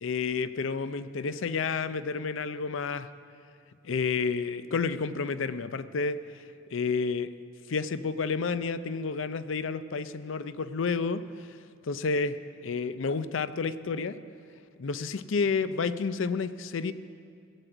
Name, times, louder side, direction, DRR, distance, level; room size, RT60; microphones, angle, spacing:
voice 1, 0.0-3.1 3.8-6.2 6.7-7.3 7.7-11.5 11.8-14.2 14.8-16.9, left 5 dB, 70° left, 13 dB, 0.5 m, -30 dB
16.5 x 7.7 x 7.9 m, 2.3 s
head